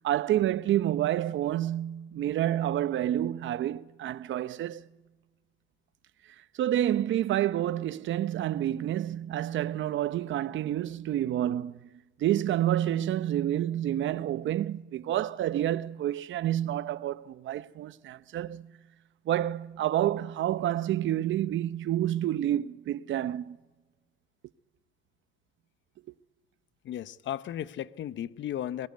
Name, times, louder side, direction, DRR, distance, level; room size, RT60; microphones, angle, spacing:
voice 1, 0.0-4.9 6.6-11.9 12.2-18.7 19.3-23.6, right 12 dB, 75° right, 0.8 m, -29 dB
voice 2, 26.8-28.9, left 11 dB, 70° left, 0.9 m, -35 dB
22.0 x 22.0 x 9.4 m
cardioid pair, 90°, 20 cm